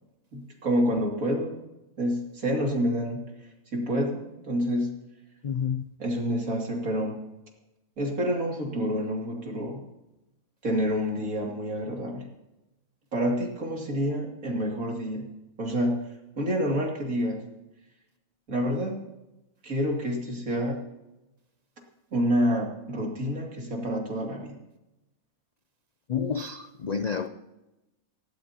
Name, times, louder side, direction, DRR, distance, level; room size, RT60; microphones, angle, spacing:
voice 1, 0.3-1.6 2.0-4.9 6.0-7.2 8.0-9.8 10.6-12.3 13.1-15.3 15.6-16.0 16.4-17.4 18.5-19.1 19.6-20.8 22.1-24.6, equal, 70° right, 0 dB, 3.1 m, -28 dB
voice 2, 5.4-5.8 26.1-27.3, left 6 dB, 70° left, 9 dB, 0.4 m, -29 dB
19.0 x 16.5 x 2.9 m, 0.98 s
omnidirectional pair, 1.5 m